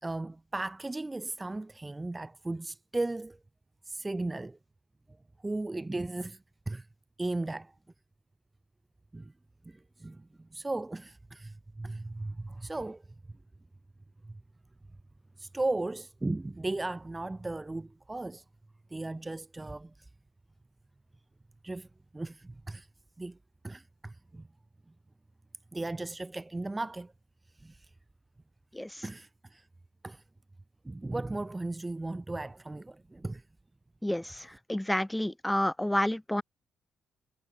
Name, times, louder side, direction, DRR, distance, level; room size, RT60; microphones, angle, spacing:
voice 1, 0.0-3.4 3.9-4.6 5.4-6.4 6.7-6.9 7.2-7.7 9.1-9.3 9.7-10.2 10.5-13.0 14.3-14.4 15.4-18.4 18.9-19.9 21.6-21.9 22.1-22.9 23.2-23.4 23.6-24.4 25.7-27.1 27.6-27.8 29.0-29.6 30.0-30.2 30.9-33.4, right 2 dB, 15° right, 1.9 m, -36 dB
voice 2, 34.7-36.4, left 1 dB, 5° left, 0.3 m, -29 dB
cardioid pair, 90°, 0 cm